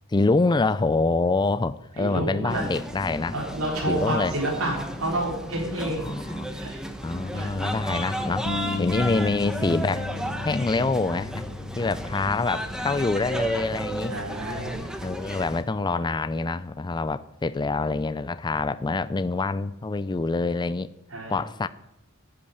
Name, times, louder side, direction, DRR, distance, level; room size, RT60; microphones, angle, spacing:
voice 1, 0.1-3.3 3.9-4.3 5.8-6.6 7.0-8.5 8.8-10.1 10.4-11.4 11.8-14.1 15.0-20.9 21.3-21.7, left 3 dB, 20° left, 14 dB, 0.4 m, -26 dB
voice 2, 2.0-2.7 3.3-6.8 7.3-7.5 14.1-14.8 21.1-21.4, right 1 dB, 80° right, -2 dB, 3.7 m, -29 dB
sound 1, 2.5-15.6, right 1 dB, 5° right, 1.2 m, -33 dB
Bass guitar, 8.5-14.7, left 3 dB, 70° left, 0.9 m, -36 dB
12.0 x 8.6 x 9.7 m, 0.86 s
head